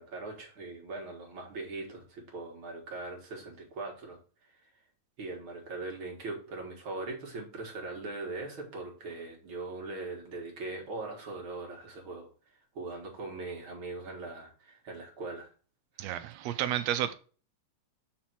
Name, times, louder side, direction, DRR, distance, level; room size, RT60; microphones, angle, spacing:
voice 1, 0.0-4.7 5.2-12.3 12.7-15.5, right 3 dB, 50° right, 0 dB, 2.1 m, -40 dB
voice 2, 16.0-17.1, right 11 dB, 75° right, 11 dB, 1.7 m, -31 dB
6.1 x 4.2 x 5.9 m, 0.38 s
omnidirectional pair, 3.3 m